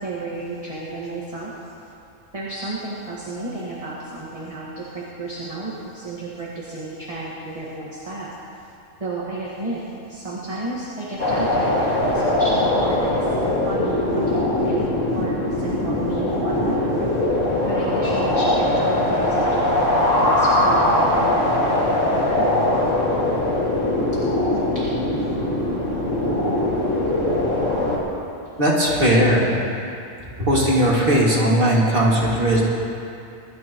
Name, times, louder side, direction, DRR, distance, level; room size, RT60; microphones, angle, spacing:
voice 1, 0.0-1.5 2.3-8.3 9.0-9.8 10.1-11.8 12.1-13.3 13.7-14.8 15.1-16.8 17.7-22.5 24.7-24.8 31.7-31.8, right 2 dB, 30° right, -7 dB, 1.8 m, -32 dB
sound 1, 11.2-28.0, left 1 dB, 80° left, 2.6 m, -21 dB
voice 2, 28.6-29.5 30.5-32.6, equal, 45° right, -5 dB, 2.6 m, -18 dB
23.0 x 12.5 x 3.1 m, 2.6 s
omnidirectional pair, 1.3 m